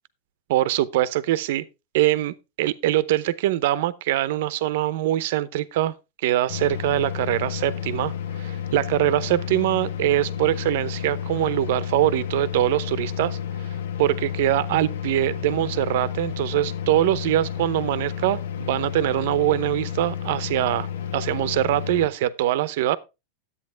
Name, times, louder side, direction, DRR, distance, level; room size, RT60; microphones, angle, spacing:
voice 1, 0.5-1.6 1.9-5.9 6.2-8.1 8.4-13.4 14.0-23.0, right 14 dB, 65° right, 0.8 m, -23 dB
sound 1, 6.5-22.1, left 9 dB, 90° left, 1.2 m, -31 dB
11.0 x 8.5 x 3.3 m
supercardioid pair, 145°, 0 cm